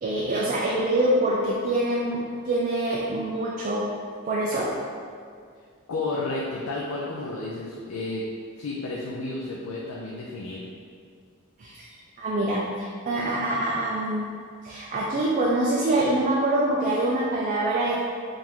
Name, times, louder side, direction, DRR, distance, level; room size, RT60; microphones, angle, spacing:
voice 1, 0.0-3.9 4.2-4.7 11.6-11.8 12.2-14.3 14.6-18.0, right 1 dB, 40° right, -4 dB, 0.4 m, -25 dB
voice 2, 5.9-8.2 8.6-10.6, left 2 dB, 90° left, -4 dB, 0.5 m, -31 dB
3.8 x 2.6 x 4.5 m, 2.1 s
head